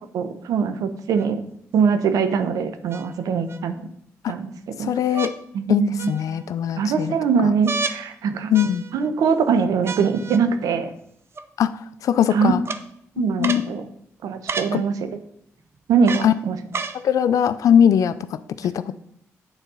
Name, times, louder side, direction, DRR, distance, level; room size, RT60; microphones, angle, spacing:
voice 1, 0.1-1.4 1.7-3.8 4.3-4.5 4.8-4.9 5.5-6.1 6.8-8.5 8.9-10.9 12.3-12.5 13.2-13.8 14.2-15.0 15.9-16.6, right 6 dB, 80° right, 9 dB, 0.8 m, -22 dB
sound 1, 1.2-1.3 2.9-3.6 5.1-5.4 6.0-6.5 7.6-8.0 8.5-9.1 9.9-10.4 11.4-11.5 12.7-12.8 13.4-13.7 14.5-14.7 16.1-16.3 16.7-17.0 17.8-17.9, right 4 dB, 45° right, 0.7 m, -30 dB
voice 2, 4.8-5.3 5.7-7.2 7.4-7.5 8.5-8.8 11.6-11.7 12.0-12.6 13.2-13.6 14.7-14.8 16.2-16.3 17.0-18.1 18.6-18.9, left 9 dB, 70° left, 14 dB, 0.5 m, -20 dB
8.8 x 4.2 x 5.5 m, 0.72 s
cardioid pair, 70°, 6 cm